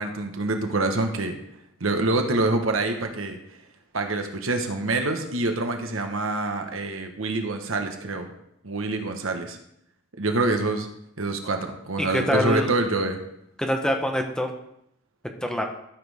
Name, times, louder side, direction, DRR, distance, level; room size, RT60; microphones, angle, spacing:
voice 1, 0.0-1.3 1.8-3.4 3.9-8.3 8.6-9.6 10.2-10.9 11.2-13.2, right 2 dB, 75° right, 5 dB, 1.3 m, -26 dB
voice 2, 12.0-12.7 13.6-14.5 15.4-15.6, equal, 5° left, 3 dB, 1.0 m, -24 dB
13.5 x 7.5 x 3.6 m, 0.76 s
head